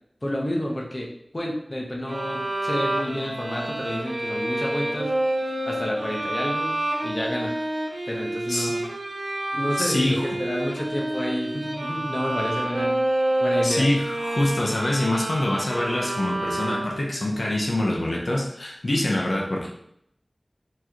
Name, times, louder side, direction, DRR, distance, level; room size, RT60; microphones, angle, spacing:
voice 1, 0.2-5.1 5.7-6.7 7.0-7.5 8.1-8.9 9.5-10.1 10.4-13.0 13.4-13.9, left 1 dB, 45° left, -1 dB, 1.0 m, -30 dB
sound 1, 2.1-17.2, right 1 dB, 85° right, 0.6 m, -28 dB
voice 2, 9.8-10.3 13.6-19.7, left 1 dB, 75° left, -2 dB, 0.8 m, -25 dB
4.6 x 3.1 x 2.9 m, 0.73 s
wide cardioid pair, 40°, 0 cm